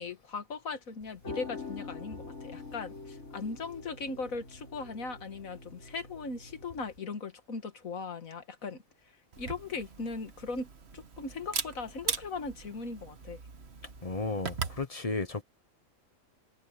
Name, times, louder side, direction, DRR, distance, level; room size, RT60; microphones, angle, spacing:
voice 1, 0.0-8.8 9.4-10.7 10.9-13.4, left 4 dB, 80° left, 2.2 m, -38 dB
sound 1, 1.0-7.0, left 3 dB, 60° left, 4.5 m, -45 dB
Camera, 9.3-14.8, right 5 dB, 50° right, 1.6 m, -39 dB
voice 2, 14.0-15.4, left 3 dB, 30° left, 1.0 m, -33 dB
omnidirectional pair, 1.4 m